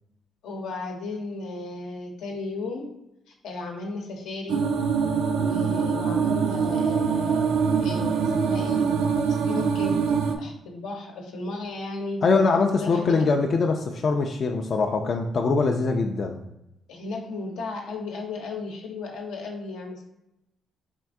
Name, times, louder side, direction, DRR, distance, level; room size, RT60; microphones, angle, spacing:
voice 1, 0.4-2.9 3.4-4.7 5.3-8.9 9.3-10.0 10.4-12.2 12.8-13.3 16.9-20.0, left 3 dB, 90° left, 0 dB, 0.8 m, -35 dB
sound 1, 4.5-10.3, right 6 dB, 80° right, 0.4 m, -24 dB
voice 2, 12.2-16.4, left 4 dB, 50° left, 3 dB, 0.4 m, -23 dB
4.5 x 2.5 x 3.5 m, 0.86 s
cardioid pair, 90°, 0 cm